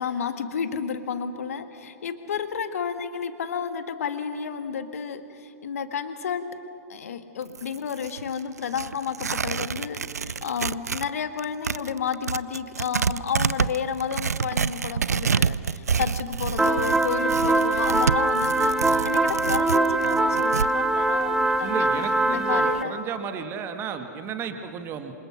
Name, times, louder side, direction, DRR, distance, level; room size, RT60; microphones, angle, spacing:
voice 1, 0.0-6.5 6.9-21.9 22.3-23.0, left 7 dB, 60° left, 9 dB, 1.7 m, -31 dB
Tearing, 7.4-11.1 11.4-20.7, right 6 dB, 70° right, 0.5 m, -28 dB
sound 1, 16.6-22.8, right 2 dB, 5° right, 0.9 m, -22 dB
voice 2, 21.6-25.1, right 7 dB, 25° right, 8 dB, 1.9 m, -33 dB
27.0 x 27.0 x 6.3 m, 2.6 s
figure-of-eight pair, 105°, 9 cm